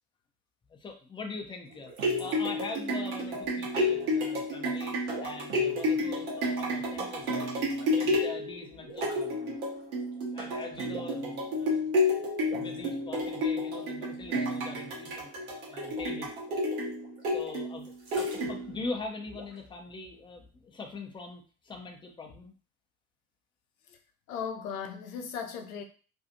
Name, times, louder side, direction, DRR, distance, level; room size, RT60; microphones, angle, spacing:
voice 1, 0.7-9.6 10.3-12.1 12.4-15.3 15.7-16.3 17.3-22.5, left 3 dB, 10° left, 3 dB, 0.4 m, -42 dB
sound 1, 1.7-18.8 19.4-19.5, left 1 dB, 70° right, 0.9 m, -31 dB
voice 2, 24.3-25.8, left 7 dB, 65° left, 5 dB, 0.6 m, -37 dB
2.6 x 2.4 x 2.6 m, 0.37 s
figure-of-eight pair, 60°, 43 cm